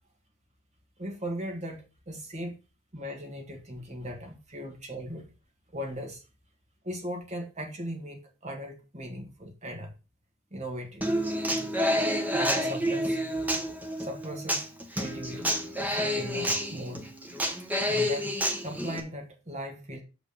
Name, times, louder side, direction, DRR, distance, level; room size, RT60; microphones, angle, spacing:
voice 1, 1.0-2.5 2.9-5.3 5.7-6.2 6.8-9.9 10.5-11.1 12.1-13.5 14.0-15.5 15.8-17.1 17.8-20.0, equal, 30° right, 1.8 m, -38 dB
Human voice / Acoustic guitar, 11.0-19.0, equal, 10° right, 1.3 m, -29 dB
7.1 x 4.9 x 6.9 m
head